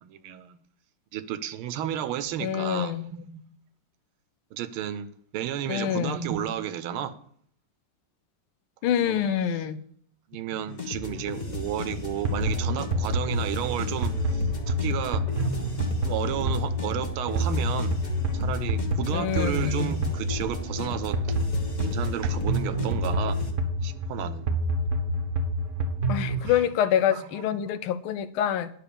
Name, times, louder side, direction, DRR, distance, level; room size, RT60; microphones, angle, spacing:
voice 1, 0.0-0.6 1.1-3.5 4.5-5.1 5.3-7.1 9.0-9.6 10.3-15.2 16.0-17.9 18.3-21.4 21.8-23.4 23.8-24.5 26.4-26.6 27.1-27.4, right 10 dB, 80° right, 13 dB, 1.5 m, -32 dB
voice 2, 2.4-3.1 5.7-6.2 8.8-9.8 19.1-19.8 26.1-28.7, left 10 dB, 80° left, 13 dB, 1.5 m, -26 dB
sound 1, 10.7-23.5, left 3 dB, 30° left, 0.9 m, -35 dB
sound 2, 12.2-26.5, equal, 50° right, 1.0 m, -28 dB
10.0 x 5.8 x 6.9 m, 0.62 s
omnidirectional pair, 2.3 m